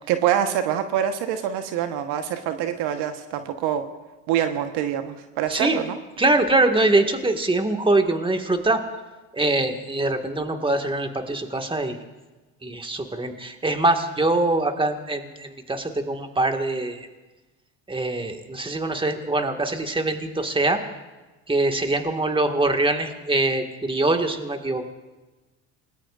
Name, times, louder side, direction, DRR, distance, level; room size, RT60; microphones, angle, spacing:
voice 1, 0.1-3.8 4.3-6.0, right 10 dB, 65° right, 7 dB, 1.3 m, -25 dB
voice 2, 5.5-5.8 6.2-8.8 9.3-12.0 12.6-17.1 17.9-20.8 21.5-24.8, right 2 dB, 10° right, 5 dB, 1.9 m, -23 dB
28.0 x 20.0 x 2.6 m, 1.2 s
hypercardioid pair, 75°, 43 cm